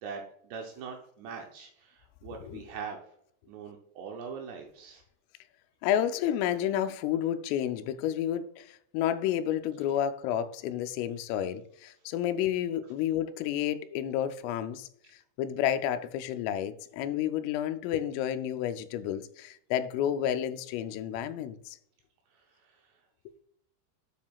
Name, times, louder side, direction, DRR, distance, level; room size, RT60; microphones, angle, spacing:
voice 1, 0.0-3.0 3.5-5.0 22.6-22.8, right 6 dB, 80° right, 2.5 m, -42 dB
voice 2, 5.8-14.9 15.4-21.8, left 10 dB, 90° left, 3.2 m, -30 dB
9.5 x 7.0 x 2.4 m
omnidirectional pair, 5.7 m